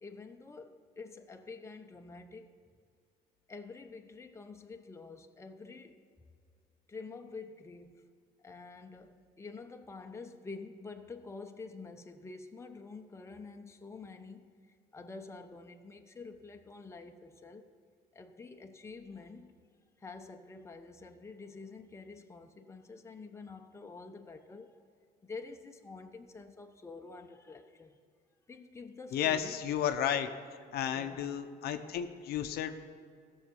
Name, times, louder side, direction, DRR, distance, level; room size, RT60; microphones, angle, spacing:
voice 1, 0.0-2.5 3.5-6.0 6.9-8.1 8.4-17.7 18.1-19.5 20.0-24.8 25.2-28.0 28.5-29.6 30.9-31.3, left 4 dB, 15° left, 0.8 m, -48 dB
voice 2, 29.1-30.3 30.7-32.7, left 9 dB, 70° left, 0.7 m, -32 dB
15.5 x 6.6 x 5.4 m
cardioid pair, 110°, 17 cm